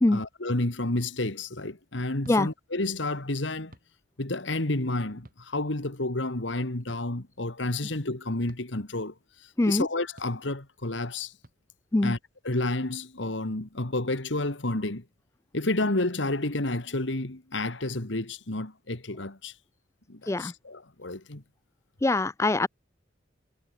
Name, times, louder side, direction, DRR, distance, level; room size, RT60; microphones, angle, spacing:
voice 1, 0.1-3.7 4.2-11.3 12.0-12.2 12.4-15.0 15.5-19.6 20.1-21.4, left 2 dB, 80° left, 2.2 m, -30 dB
sound 1, 0.9-1.1 2.2-2.4 3.7-3.9 5.2-5.4 6.9-7.0 8.5-8.7 10.2-10.3 11.4-11.6 12.5-12.7, right 1 dB, 45° right, 3.6 m, -50 dB
voice 2, 22.0-22.7, left 2 dB, 15° left, 0.3 m, -23 dB
head